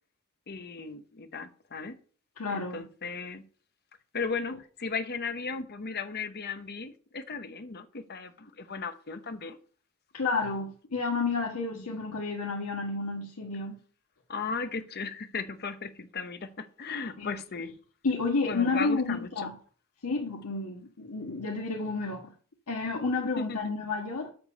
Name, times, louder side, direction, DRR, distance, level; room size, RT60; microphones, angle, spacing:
voice 1, 0.5-2.0 2.5-3.5 4.1-9.6 11.7-12.0 14.3-17.7 18.5-19.5 23.4-23.6, left 4 dB, 45° left, 0.9 m, -36 dB
voice 2, 2.4-2.8 10.1-13.8 17.2-17.3 18.0-19.5 20.0-22.2 22.7-24.3, left 3 dB, 90° left, 1.4 m, -31 dB
7.9 x 6.8 x 5.4 m
head